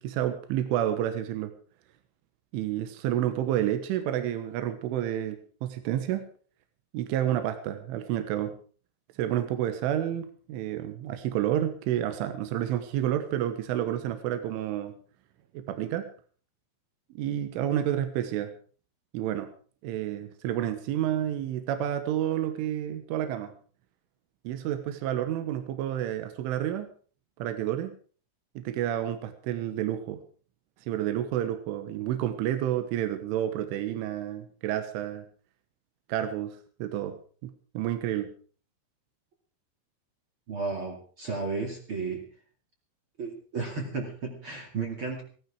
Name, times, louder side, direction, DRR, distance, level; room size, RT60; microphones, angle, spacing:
voice 1, 0.0-1.5 2.5-6.3 6.9-8.6 9.2-15.0 15.5-16.1 17.2-18.5 19.1-19.5 19.8-23.5 24.5-26.9 27.4-28.0 28.6-30.2 30.9-35.3 36.1-37.2 37.4-38.3, right 11 dB, 80° right, 8 dB, 3.8 m, -30 dB
voice 2, 40.5-42.3 43.2-45.2, right 4 dB, 35° right, 2 dB, 2.3 m, -33 dB
17.5 x 13.0 x 4.9 m, 0.42 s
omnidirectional pair, 5.6 m